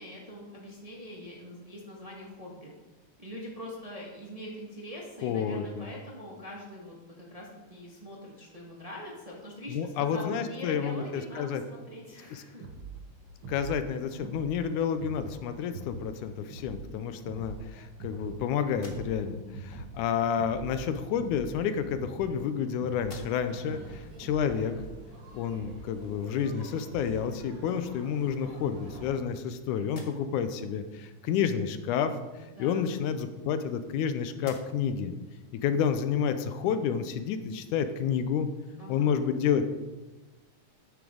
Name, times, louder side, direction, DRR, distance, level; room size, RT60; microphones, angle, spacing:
voice 1, 0.0-2.7 3.2-12.6 23.6-23.9 32.5-33.0 38.8-39.1, left 1 dB, 20° right, -3 dB, 1.2 m, -43 dB
voice 2, 5.2-5.9 9.7-11.6 12.3-12.4 13.5-24.7 25.3-32.1 32.6-35.1 35.5-38.5 38.9-39.6, left 7 dB, 90° left, 10 dB, 2.2 m, -30 dB
sound 1, 12.6-27.4, right 3 dB, 60° right, 1.3 m, -44 dB
sound 2, 18.7-19.5 20.6-20.8 21.7-22.6 23.0-23.7 24.2-24.3 26.9-27.1 27.5-28.2 28.8-29.5 29.8-30.5 32.5-34.0 34.3-35.0, left 2 dB, 75° left, 0.5 m, -53 dB
sound 3, 23.2-29.1, right 1 dB, 85° right, 5.7 m, -50 dB
12.0 x 9.4 x 3.9 m, 1.2 s
omnidirectional pair, 3.5 m